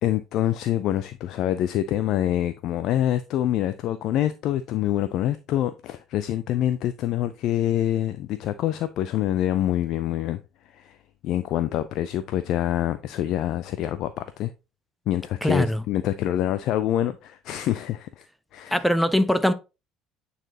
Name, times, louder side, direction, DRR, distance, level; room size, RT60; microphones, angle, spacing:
voice 1, 0.0-10.4 10.7-11.0 11.2-14.5 15.1-18.2 18.5-18.9, left 12 dB, 55° left, 0.4 m, -26 dB
voice 2, 15.4-15.8 18.7-19.5, equal, ahead, 0.7 m, -21 dB
8.9 x 4.1 x 2.8 m
figure-of-eight pair, 60°, 0 cm